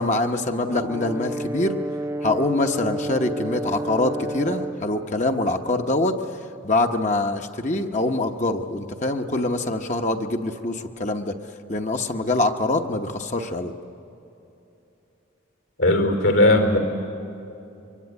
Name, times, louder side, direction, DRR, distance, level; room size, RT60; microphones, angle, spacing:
voice 1, 0.0-1.8 2.2-6.2 6.6-11.3 11.7-13.7, left 2 dB, 35° left, 4 dB, 1.0 m, -24 dB
Brass instrument, 0.7-4.8, right 1 dB, 15° right, 0.6 m, -30 dB
voice 2, 15.8-16.8, left 1 dB, 80° left, 5 dB, 3.6 m, -17 dB
23.5 x 23.5 x 9.7 m, 2.8 s
head